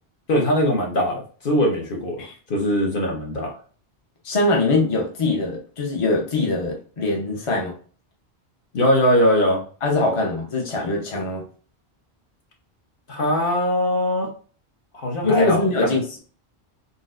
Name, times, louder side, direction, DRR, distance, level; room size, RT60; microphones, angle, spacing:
voice 1, 0.3-3.5 8.7-9.6 13.1-14.3 14.9-16.0, equal, 60° left, 0 dB, 1.0 m, -21 dB
voice 2, 4.2-7.7 9.8-11.4 15.2-16.2, left 2 dB, 35° left, -1 dB, 0.8 m, -22 dB
4.0 x 2.2 x 2.5 m, 0.40 s
omnidirectional pair, 1.1 m